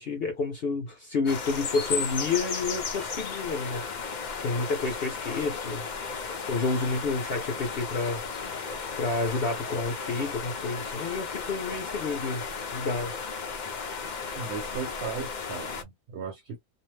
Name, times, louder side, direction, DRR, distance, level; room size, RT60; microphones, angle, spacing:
voice 1, 0.0-3.8 4.4-5.9 6.5-8.2 9.0-12.4 12.7-13.1, left 3 dB, 50° left, 0.8 m, -29 dB
sound 1, 1.2-15.8, left 5 dB, 90° left, 0.4 m, -34 dB
voice 2, 14.3-16.6, right 6 dB, 60° right, 0.8 m, -37 dB
2.7 x 2.0 x 3.2 m
omnidirectional pair, 1.5 m